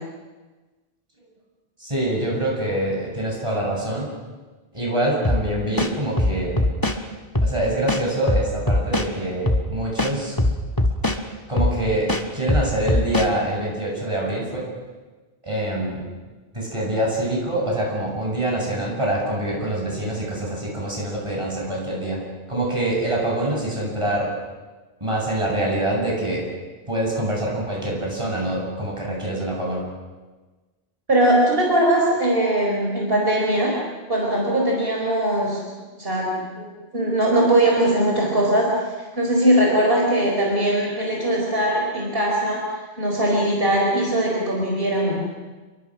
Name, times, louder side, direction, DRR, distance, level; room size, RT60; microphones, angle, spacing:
voice 1, 1.8-4.1 4.7-6.7 7.4-10.4 11.5-14.7 15.4-16.0 16.5-22.2 22.5-24.3 25.0-26.5 26.9-29.8, right 1 dB, 30° right, -2 dB, 7.8 m, -25 dB
sound 1, 5.2-5.4 5.8-7.0 7.3-7.5 7.9-9.1 9.5-9.6 10.0-11.2 11.6-11.7 12.1-13.3, left 1 dB, 20° left, 1.7 m, -20 dB
voice 2, 31.1-33.7 34.1-35.6 36.0-36.7 36.9-38.7 39.1-42.6 43.0-45.2, right 1 dB, 60° right, -2 dB, 4.8 m, -20 dB
29.0 x 23.5 x 6.4 m, 1.3 s
omnidirectional pair, 1.1 m